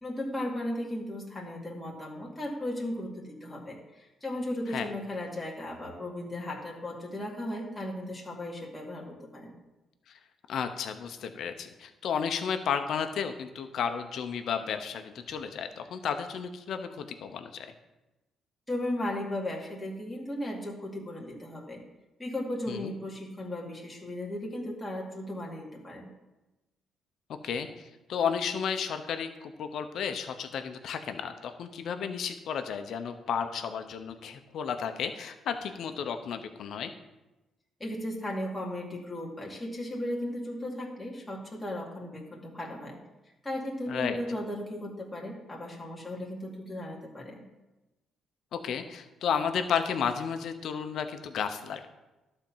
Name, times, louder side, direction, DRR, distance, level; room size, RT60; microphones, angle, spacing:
voice 1, 0.0-9.5 18.7-21.8 22.2-26.1 37.8-43.0 43.4-47.4, left 1 dB, 10° left, -3 dB, 2.2 m, -36 dB
voice 2, 10.5-17.7 22.7-22.9 27.4-36.9 43.9-44.2 48.5-51.9, left 7 dB, 70° left, 8 dB, 1.0 m, -33 dB
11.5 x 4.4 x 7.4 m, 1.0 s
cardioid pair, 90°, 0 cm